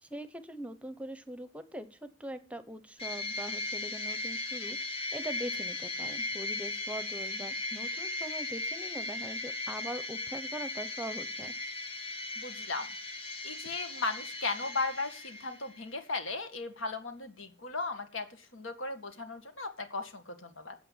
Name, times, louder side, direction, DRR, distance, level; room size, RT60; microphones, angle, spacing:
voice 1, 0.0-11.5, right 1 dB, 5° right, 12 dB, 0.8 m, -42 dB
sound 1, 3.0-15.8, left 2 dB, 30° left, 2.3 m, -37 dB
voice 2, 12.4-12.9 13.4-20.7, left 3 dB, 80° left, 7 dB, 2.1 m, -36 dB
9.0 x 7.9 x 8.3 m, 0.37 s
head